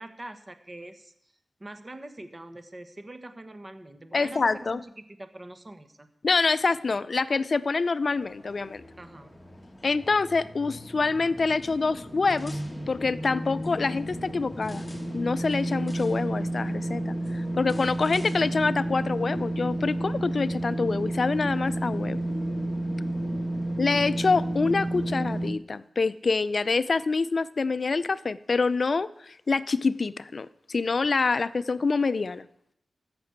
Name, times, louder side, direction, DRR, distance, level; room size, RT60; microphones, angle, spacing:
voice 1, 0.0-1.3 1.6-6.1 9.0-9.4, right 1 dB, 25° right, 9 dB, 1.3 m, -44 dB
voice 2, 4.1-4.8 6.2-8.8 9.8-12.6 12.9-14.8 15.1-22.2 23.8-32.5, left 4 dB, 50° left, 16 dB, 0.5 m, -26 dB
sound 1, 8.2-25.5, right 1 dB, 15° left, 1.7 m, -32 dB
14.0 x 6.1 x 8.7 m, 0.74 s
wide cardioid pair, 80°, 0 cm